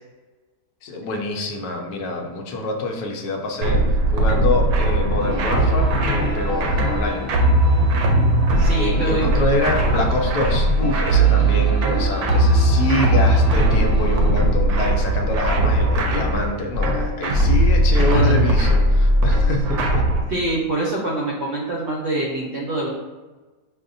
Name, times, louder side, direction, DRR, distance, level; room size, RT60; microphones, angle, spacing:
voice 1, 0.8-3.8 4.1-7.3 8.7-20.1, left 2 dB, 75° left, 2 dB, 1.0 m, -26 dB
sound 1, 3.6-20.2, right 1 dB, 75° right, 1.1 m, -18 dB
sound 2, 5.2-14.3, left 1 dB, 5° left, 0.8 m, -30 dB
voice 2, 8.6-9.3 9.8-10.0 18.1-18.4 20.3-22.9, right 2 dB, 60° right, -4 dB, 0.7 m, -25 dB
6.0 x 2.1 x 2.5 m, 1.2 s
omnidirectional pair, 1.7 m